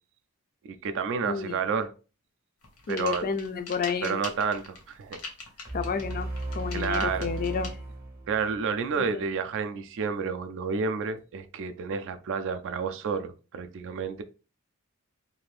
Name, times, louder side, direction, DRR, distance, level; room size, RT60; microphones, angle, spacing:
voice 1, 0.7-1.9 2.9-3.3 4.0-5.2 6.7-7.3 8.3-14.2, right 5 dB, 60° right, 0.4 m, -30 dB
voice 2, 1.2-1.6 2.9-4.2 5.7-7.8 8.9-9.3, left 5 dB, 40° left, 0.3 m, -31 dB
sound 1, 2.6-7.7, left 3 dB, 85° left, 1.0 m, -41 dB
sound 2, 5.7-9.0, right 2 dB, 45° right, 0.7 m, -36 dB
2.7 x 2.5 x 3.2 m
head